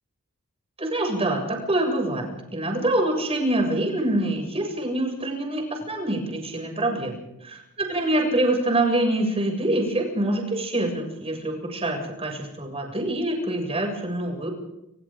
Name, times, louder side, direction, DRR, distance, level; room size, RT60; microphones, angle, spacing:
voice 1, 0.8-7.6 7.9-14.5, right 1 dB, 30° right, 1 dB, 7.2 m, -25 dB
29.5 x 27.5 x 3.9 m, 0.87 s
head